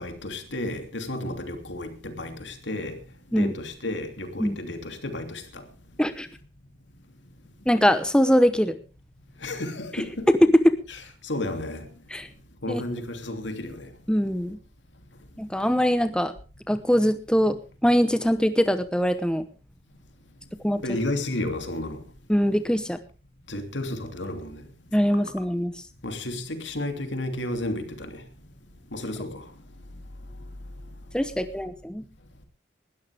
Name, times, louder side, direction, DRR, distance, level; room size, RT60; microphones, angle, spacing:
voice 1, 0.0-3.0 3.3-5.6 9.4-10.3 10.9-11.9 12.6-13.9 20.8-22.0 23.5-24.6 26.0-28.2 28.9-29.4, left 1 dB, 85° left, 2.9 m, -32 dB
voice 2, 7.7-8.7 10.3-10.8 12.1-12.3 12.7-12.8 14.1-14.6 15.4-16.3 16.7-17.6 17.8-19.4 20.6-20.8 22.3-23.0 24.9-25.7 31.1-32.0, equal, 5° left, 0.9 m, -22 dB
19.5 x 13.0 x 3.5 m
head